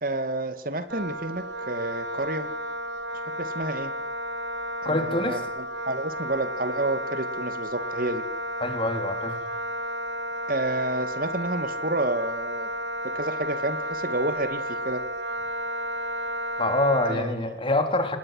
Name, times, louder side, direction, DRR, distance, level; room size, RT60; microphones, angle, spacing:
voice 1, 0.0-2.5 3.4-3.9 4.8-8.2 10.5-12.7 13.0-15.0 17.1-17.4, right 2 dB, 50° right, 10 dB, 2.2 m, -30 dB
Wind instrument woodwind instrument, 0.9-17.2, equal, 70° right, 3.7 m, -32 dB
voice 2, 4.9-5.4 8.6-9.5 16.6-18.2, left 1 dB, 30° left, 6 dB, 3.8 m, -25 dB
29.5 x 20.5 x 7.9 m, 0.79 s
head